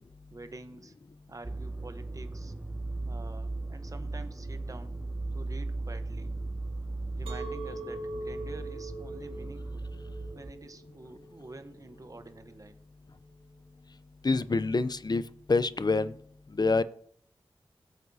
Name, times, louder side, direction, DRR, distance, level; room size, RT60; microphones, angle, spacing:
voice 1, 0.3-0.9 1.3-2.5 3.0-4.9 5.3-6.4 7.1-9.9 10.3-12.8, right 2 dB, 40° right, 9 dB, 0.9 m, -48 dB
sound 1, 1.4-10.5, right 2 dB, 20° right, 0.5 m, -37 dB
Chink clink, 7.3-12.4, right 2 dB, 85° right, 1.6 m, -42 dB
voice 2, 14.2-15.2 15.5-16.1 16.5-16.8, left 3 dB, 45° left, 14 dB, 0.6 m, -26 dB
18.5 x 8.0 x 2.7 m, 0.63 s
cardioid pair, 50°, 9 cm